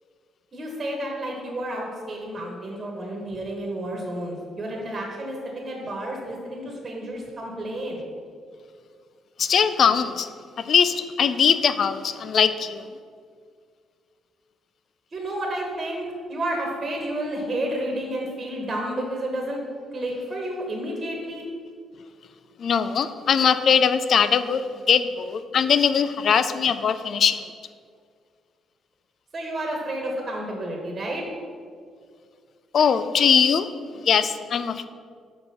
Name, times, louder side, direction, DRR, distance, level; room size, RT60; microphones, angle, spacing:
voice 1, 0.5-8.1 15.1-19.6 19.9-21.4 29.3-31.2, right 1 dB, 35° right, 0 dB, 1.4 m, -31 dB
voice 2, 9.4-10.3 10.7-12.8 22.6-27.4 32.7-33.7 34.0-34.9, left 7 dB, 60° left, 12 dB, 0.4 m, -21 dB
6.0 x 5.1 x 5.6 m, 2.1 s
cardioid pair, 90°, 0 cm